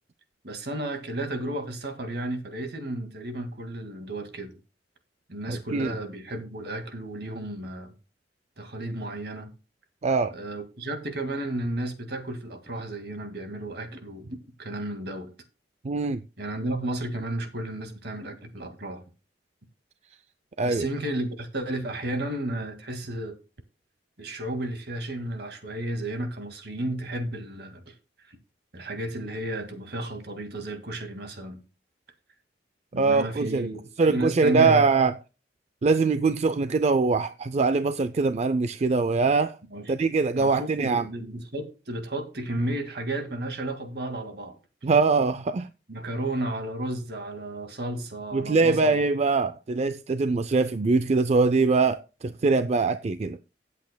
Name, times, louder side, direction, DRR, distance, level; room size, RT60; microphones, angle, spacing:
voice 1, 0.4-4.5 5.3-7.9 8.6-9.5 10.3-15.3 16.4-19.0 20.6-23.4 24.2-27.9 28.7-31.6 32.9-34.8 39.7-40.0 40.4-44.6 45.9-49.0, right 1 dB, 65° right, 2.1 m, -33 dB
voice 2, 5.5-5.9 10.0-10.3 15.8-16.2 20.6-20.9 32.9-33.7 34.0-35.1 35.8-39.6 39.9-41.0 44.8-45.7 48.3-53.4, right 4 dB, 40° right, 0.4 m, -23 dB
17.0 x 8.3 x 2.2 m
head